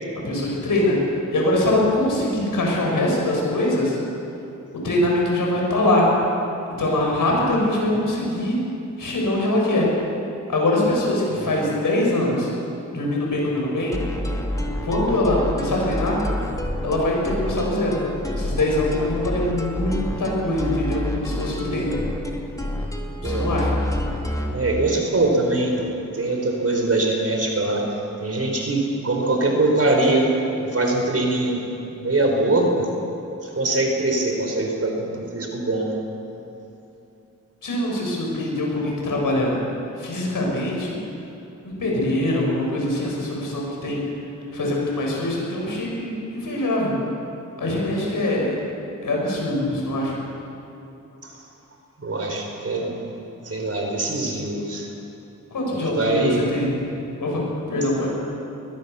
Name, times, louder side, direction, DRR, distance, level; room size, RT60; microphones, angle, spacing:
voice 1, 0.2-1.0 1.3-4.0 4.7-6.1 6.8-8.6 9.0-9.9 10.5-12.5 12.9-14.0 14.8-16.2 16.8-18.0 18.3-22.0 23.2-23.7 37.6-39.7 40.0-41.0 41.6-44.0 44.5-47.0 47.6-48.5 49.0-50.1 55.5-56.7 57.2-58.1, left 1 dB, 80° left, -2 dB, 7.1 m, -23 dB
sound 1, 13.9-24.6, left 1 dB, 10° left, 3.0 m, -28 dB
voice 2, 23.2-23.5 24.5-25.9 26.1-30.3 30.6-31.7 32.0-32.9 33.4-36.0 51.2-51.4 52.0-53.0 53.4-54.9 55.7-56.4, right 2 dB, 45° right, 1 dB, 4.3 m, -23 dB
22.0 x 20.5 x 7.0 m, 2.9 s
cardioid pair, 70°, 32 cm